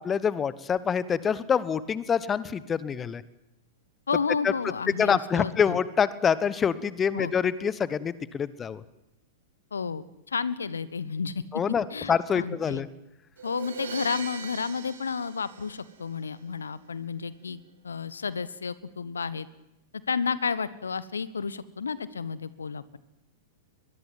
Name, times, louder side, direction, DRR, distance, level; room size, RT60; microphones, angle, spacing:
voice 1, 0.0-3.2 4.4-4.5 5.0-8.8 11.5-12.9, left 7 dB, 20° left, 17 dB, 1.2 m, -26 dB
voice 2, 4.1-5.8 7.1-7.3 9.7-11.4 11.9-12.8 13.4-19.5 20.1-23.0, left 5 dB, 70° left, 17 dB, 1.2 m, -31 dB
Crash cymbal, 13.4-16.3, right 6 dB, 65° right, 6.1 m, -40 dB
22.5 x 22.5 x 9.3 m, 0.89 s
figure-of-eight pair, 100°, 0 cm